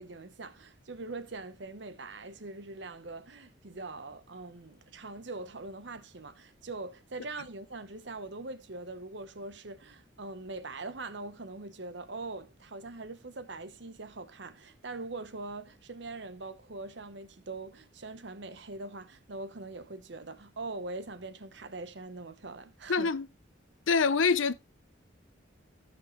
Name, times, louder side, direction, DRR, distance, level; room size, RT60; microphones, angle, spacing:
voice 1, 0.0-23.1, right 3 dB, 65° right, 1.0 m, -42 dB
voice 2, 22.9-23.3 23.9-24.5, left 5 dB, 85° left, 0.7 m, -25 dB
15.5 x 5.4 x 3.1 m
head